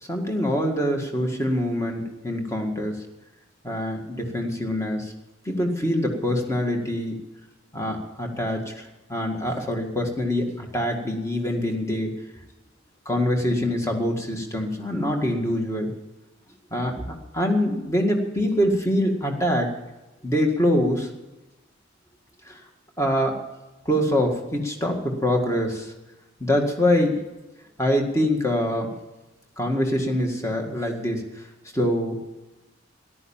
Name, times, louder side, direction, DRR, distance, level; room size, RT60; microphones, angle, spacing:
voice 1, 0.1-3.1 3.6-5.1 5.5-7.2 7.7-12.2 13.1-15.9 16.7-19.7 20.2-21.1 22.5-22.6 23.0-23.4 23.9-25.9 26.4-27.2 27.8-28.9 29.6-31.4 31.7-32.2, equal, 15° left, 2 dB, 1.9 m, -24 dB
14.0 x 11.5 x 7.3 m, 1.1 s
head